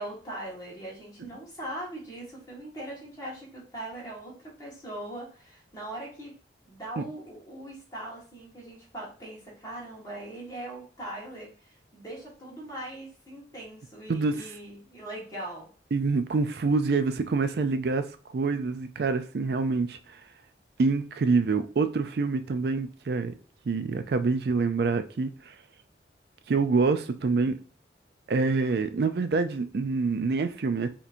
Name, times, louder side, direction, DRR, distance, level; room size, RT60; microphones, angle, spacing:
voice 1, 0.0-6.3 6.6-15.7, right 1 dB, 20° left, 1.5 m, -40 dB
voice 2, 14.1-14.5 15.9-18.0 18.3-20.0 20.8-23.3 23.7-25.5 26.5-27.6 28.3-30.9, right 4 dB, 60° right, 0.4 m, -26 dB
4.1 x 2.9 x 2.6 m
head